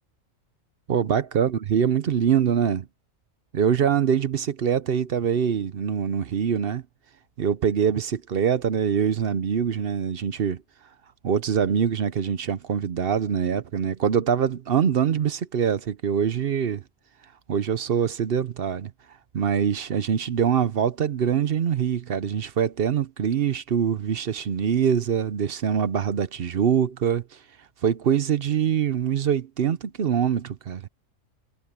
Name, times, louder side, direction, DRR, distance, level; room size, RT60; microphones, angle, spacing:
voice 1, 0.9-2.9 3.5-6.8 7.4-10.6 11.2-16.8 17.5-18.9 19.3-27.2 27.8-30.8, right 8 dB, 55° right, 0.8 m, -24 dB
omnidirectional pair, 1.3 m